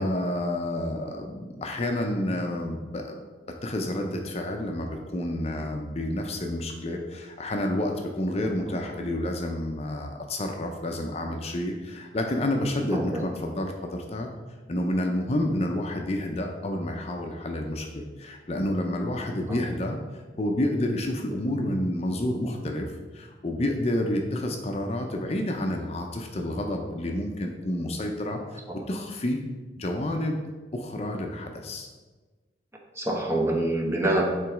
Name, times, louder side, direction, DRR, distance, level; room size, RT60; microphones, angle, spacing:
voice 1, 0.0-3.2 3.6-14.3 14.7-28.6 28.9-29.4 29.8-30.4 30.7-31.9, left 1 dB, 35° left, 3 dB, 0.5 m, -29 dB
voice 2, 8.4-8.8 12.9-13.2 33.0-34.2, right 1 dB, 15° right, -1 dB, 0.9 m, -26 dB
7.5 x 3.1 x 4.9 m, 1.3 s
head